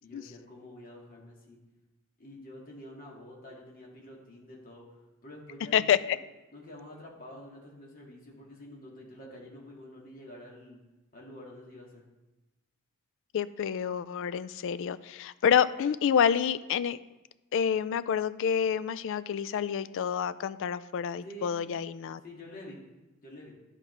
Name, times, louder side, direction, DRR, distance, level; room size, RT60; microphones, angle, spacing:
voice 1, 0.0-1.6 2.2-5.9 6.5-10.8 11.1-12.1 21.2-21.6 22.2-22.8 23.2-23.5, left 1 dB, 40° left, -3 dB, 1.9 m, -48 dB
voice 2, 13.3-17.0 17.5-22.2, left 8 dB, 60° left, 15 dB, 0.3 m, -28 dB
11.5 x 4.9 x 3.2 m, 1.0 s
head